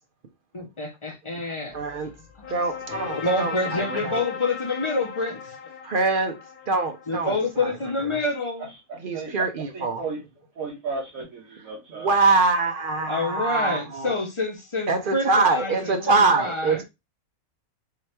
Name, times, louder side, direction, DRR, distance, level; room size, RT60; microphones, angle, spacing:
voice 1, 0.5-1.8 2.4-2.7 3.2-5.7 7.1-8.7 13.1-16.8, left 2 dB, 25° left, 0.7 m, -28 dB
sound 1, 1.7-7.6, left 6 dB, 80° left, 1.3 m, -37 dB
voice 2, 1.7-2.1 2.5-4.2 5.8-6.4 6.7-7.4 7.6-7.7 9.0-10.0 12.0-14.2 14.9-16.8, right 3 dB, 55° right, 0.6 m, -24 dB
voice 3, 8.6-9.5 9.7-10.2 10.5-12.1, right 4 dB, 70° right, 1.5 m, -34 dB
3.8 x 3.3 x 2.8 m
omnidirectional pair, 1.5 m